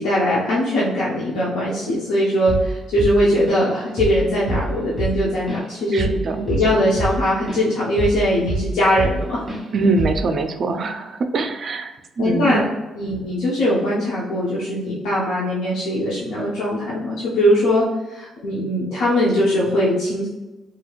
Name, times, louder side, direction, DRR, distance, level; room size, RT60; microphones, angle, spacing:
voice 1, 0.0-6.1 6.4-9.4 10.7-10.9 12.2-12.6 12.9-20.3, equal, 85° left, -7 dB, 0.7 m, -21 dB
Drum kit / Drum, 2.5-2.7 3.0-3.7 4.0-4.2 4.5-7.6 8.0-9.2 9.5-9.7 10.0-10.3, right 1 dB, 15° right, 1.0 m, -25 dB
voice 2, 5.9-6.4 9.7-12.6, right 3 dB, 50° right, 7 dB, 0.3 m, -23 dB
2.9 x 2.8 x 2.4 m, 1.1 s
cardioid pair, 90°, 0 cm